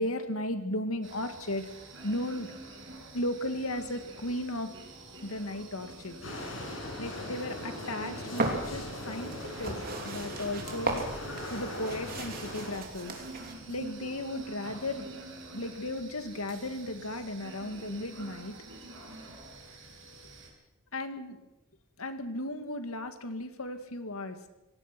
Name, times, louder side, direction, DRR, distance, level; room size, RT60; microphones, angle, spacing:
voice 1, 0.0-1.7 2.0-2.5 3.1-4.7 5.2-6.2 7.0-9.3 9.6-9.8 10.0-11.0 11.5-13.2 13.7-15.1 15.5-18.5 20.9-21.4 22.0-24.4, left 1 dB, 85° left, 8 dB, 2.2 m, -35 dB
sound 1, 1.0-20.5, right 2 dB, 60° right, 5.8 m, -47 dB
sound 2, 6.2-12.8, left 1 dB, 65° left, 6.1 m, -40 dB
sound 3, 8.3-13.5, right 2 dB, 45° right, 3.3 m, -36 dB
26.5 x 18.5 x 6.1 m, 0.95 s
head